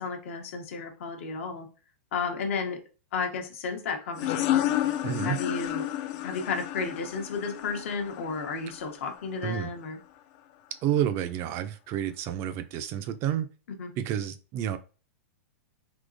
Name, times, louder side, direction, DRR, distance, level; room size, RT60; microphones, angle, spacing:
voice 1, 0.0-1.7 2.1-2.8 3.1-4.7 5.2-5.9 6.2-10.0 13.8-13.9, left 5 dB, 70° left, 4 dB, 0.8 m, -33 dB
sound 1, 4.2-9.5, left 13 dB, 45° left, 0.3 m, -31 dB
voice 2, 5.0-5.4 9.4-9.7 10.8-13.5 14.0-14.8, right 10 dB, 35° right, 11 dB, 0.3 m, -29 dB
3.6 x 2.9 x 2.5 m, 0.35 s
hypercardioid pair, 135°, 7 cm